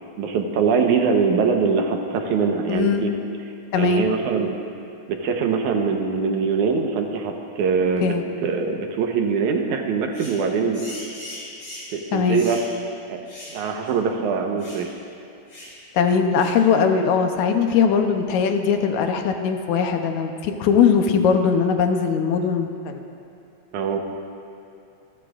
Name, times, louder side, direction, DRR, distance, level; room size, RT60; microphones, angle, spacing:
voice 1, 0.2-3.1 3.8-4.6 5.1-8.1 8.4-10.9 11.9-12.6 13.5-14.9 23.7-24.0, right 5 dB, 80° right, 3 dB, 2.4 m, -22 dB
voice 2, 2.7-3.1 3.7-4.1 8.0-8.2 12.1-12.4 15.9-23.0, left 6 dB, 75° left, 5 dB, 2.1 m, -20 dB
sound 1, 10.1-10.4 10.7-12.0 12.3-12.7 13.3-13.6 13.9-14.0 14.6-14.9 15.5-15.8 16.4-16.6, left 1 dB, 50° left, 4.9 m, -39 dB
27.0 x 13.0 x 2.5 m, 2.6 s
omnidirectional pair, 3.4 m